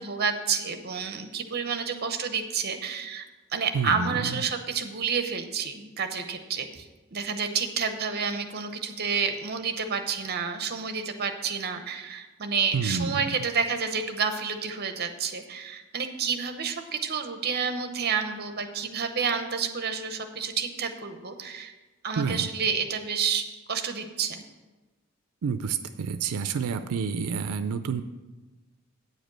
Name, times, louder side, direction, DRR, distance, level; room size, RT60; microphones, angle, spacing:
voice 1, 0.0-21.7 22.0-24.4, right 6 dB, 45° right, 7 dB, 0.8 m, -29 dB
voice 2, 3.7-4.3 12.7-13.2 22.2-22.5 25.4-28.0, right 6 dB, 80° right, 10 dB, 0.4 m, -29 dB
9.3 x 5.1 x 7.6 m, 1.2 s
head